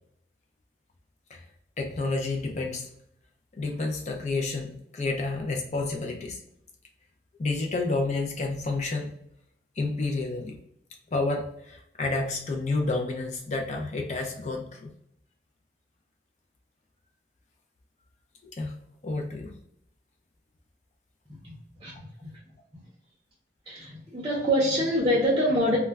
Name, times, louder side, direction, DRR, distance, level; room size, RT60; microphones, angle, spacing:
voice 1, 1.8-2.9 3.5-6.4 7.4-9.1 9.8-10.6 11.1-14.9 18.4-18.8 19.0-19.5, left 3 dB, 40° left, 1 dB, 0.4 m, -30 dB
voice 2, 21.8-22.3 23.7-25.8, equal, 25° right, -5 dB, 0.5 m, -25 dB
2.2 x 2.1 x 3.3 m, 0.74 s
head